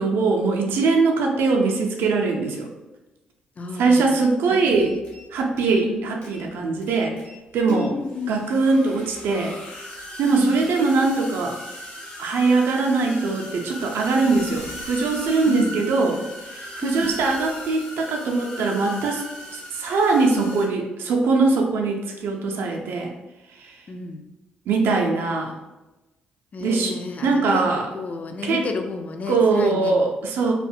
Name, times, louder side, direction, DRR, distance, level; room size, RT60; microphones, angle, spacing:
voice 1, 0.0-2.7 3.8-4.9 5.3-7.2 7.5-7.9 8.3-9.6 10.2-11.6 12.2-19.2 19.5-23.1 23.6-23.8 24.7-25.6 26.6-27.0 27.2-27.9 28.4-28.6 29.3-30.5, right 3 dB, 60° right, 1 dB, 0.4 m, -21 dB
voice 2, 3.6-5.0 5.7-6.1 7.7-8.5 10.4-10.7 15.5-15.8 16.8-17.1 23.9-24.3 26.5-27.6 27.9-30.0, left 3 dB, 35° left, 5 dB, 0.3 m, -32 dB
sound 1, 4.7-5.3 5.5-6.0 6.2-6.4 6.8-7.4 7.7-20.7, left 1 dB, 70° left, 0.7 m, -38 dB
2.5 x 2.1 x 2.5 m, 1.0 s
figure-of-eight pair, 40°, 4 cm